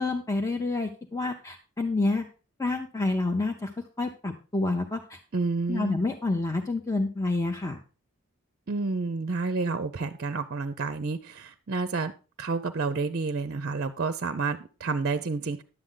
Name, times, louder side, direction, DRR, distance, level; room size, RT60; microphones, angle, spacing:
voice 1, 0.0-2.3 2.6-5.2 5.7-7.8, left 2 dB, 15° left, 3 dB, 0.6 m, -28 dB
voice 2, 5.3-6.0 8.7-12.1 12.4-15.6, right 4 dB, 45° right, 10 dB, 0.5 m, -29 dB
11.0 x 7.7 x 3.8 m, 0.34 s
head